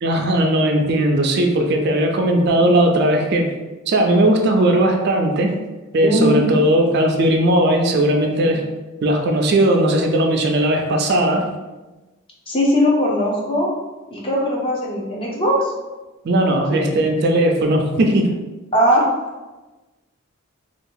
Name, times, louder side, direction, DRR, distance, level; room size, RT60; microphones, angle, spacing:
voice 1, 0.0-3.5 3.9-5.6 5.9-8.7 9.0-11.6 16.2-18.3, right 1 dB, 50° right, 2 dB, 0.4 m, -17 dB
voice 2, 6.0-6.5 12.5-13.7 14.1-15.7 16.7-16.8 18.7-19.0, equal, 25° left, -3 dB, 0.6 m, -19 dB
2.6 x 2.3 x 3.7 m, 1.2 s
head